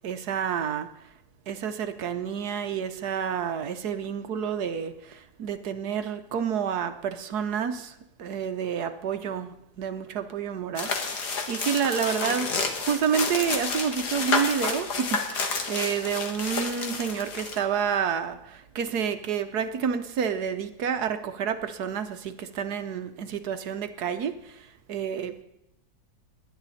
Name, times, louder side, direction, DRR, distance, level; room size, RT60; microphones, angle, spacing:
voice 1, 0.0-0.9 1.5-12.5 12.8-25.4, right 7 dB, 75° right, 1.4 m, -29 dB
sound 1, 10.8-17.6, left 4 dB, 75° left, 2.1 m, -30 dB
29.5 x 10.5 x 4.2 m
omnidirectional pair, 1.7 m